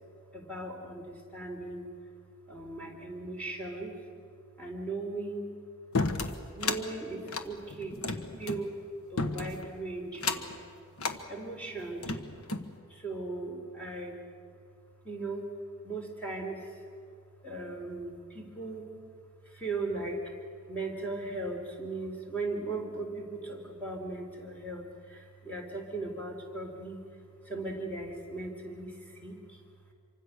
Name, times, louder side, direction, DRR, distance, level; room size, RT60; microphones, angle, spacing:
voice 1, 0.3-1.9 2.5-3.9 4.6-5.5 6.6-8.8 9.1-10.6 11.3-12.2 12.9-14.2 15.0-15.5 15.8-16.7 17.4-18.9 19.5-20.3 20.7-27.0 27.4-29.6, right 2 dB, 5° left, 0 dB, 3.5 m, -38 dB
sound 1, 5.9-6.8 7.2-8.6 9.2-9.7 10.1-10.6 11.0-11.2 11.8-12.7, left 3 dB, 75° left, 1.3 m, -32 dB
26.5 x 24.5 x 6.6 m, 2.3 s
head